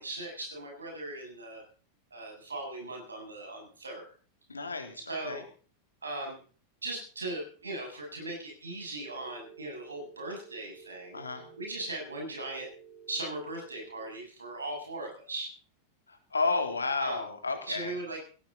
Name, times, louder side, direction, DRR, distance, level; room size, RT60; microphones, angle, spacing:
voice 1, 0.0-1.6 2.1-4.1 5.1-5.5 6.0-6.4 6.8-11.2 11.6-12.7 13.1-15.5 17.0-17.2 17.7-18.2, right 2 dB, 75° right, 2 dB, 7.4 m, -38 dB
voice 2, 4.5-5.4 11.1-11.5 16.1-17.9, left 3 dB, 75° left, 5 dB, 3.4 m, -32 dB
Telephone, 9.0-14.0, right 7 dB, 45° right, 4.1 m, -53 dB
17.0 x 16.0 x 4.2 m, 0.40 s
figure-of-eight pair, 90°, 0 cm